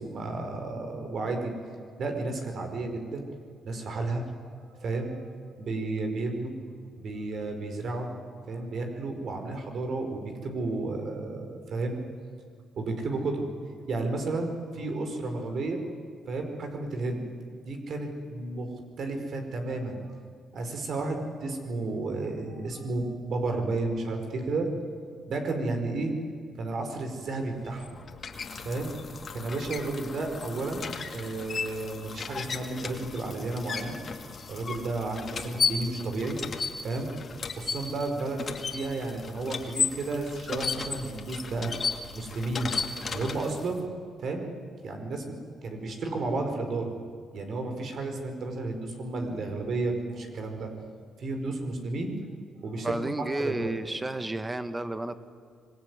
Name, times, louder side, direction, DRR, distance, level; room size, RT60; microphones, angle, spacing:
voice 1, 0.0-1.5 2.0-3.3 3.6-4.3 4.7-6.5 7.0-8.1 8.5-12.0 12.8-13.5 13.9-15.8 16.3-17.2 17.6-20.0 20.5-24.7 25.3-26.1 26.6-28.0 28.6-28.9 29.3-33.9 34.5-36.4 36.8-37.1 37.6-41.7 42.1-42.7 43.1-43.9 44.2-44.5 44.8-45.3 45.6-46.9 47.3-50.7 51.2-52.1 52.6-53.0 53.4-53.7, right 2 dB, 60° right, 5 dB, 4.9 m, -32 dB
sound 1, 27.5-43.8, left 5 dB, 45° left, 2.5 m, -35 dB
voice 2, 52.8-55.2, right 1 dB, 15° right, 11 dB, 1.6 m, -32 dB
25.5 x 20.5 x 9.7 m, 2.1 s
cardioid pair, 90°, 0 cm